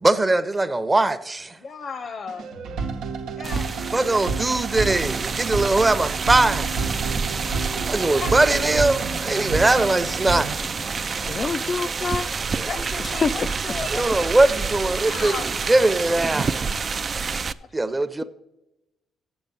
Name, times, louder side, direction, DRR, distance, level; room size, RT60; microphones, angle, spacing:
voice 1, 0.0-1.6 3.9-6.7 7.9-10.5 12.6-12.7 13.9-16.6 17.7-18.2, right 2 dB, 20° right, 0.7 m, -21 dB
voice 2, 1.6-2.5 3.4-3.7 4.2-4.7 7.8-8.3 12.7-14.4 14.9-15.5, left 5 dB, 50° left, 0.8 m, -35 dB
sound 1, 2.3-10.5, right 4 dB, 90° right, 1.0 m, -30 dB
sound 2, 3.4-17.5, right 5 dB, 40° right, 0.4 m, -28 dB
voice 3, 11.2-12.3 13.2-13.5, left 4 dB, 35° left, 0.4 m, -25 dB
8.1 x 7.2 x 7.3 m
cardioid pair, 90°, 0 cm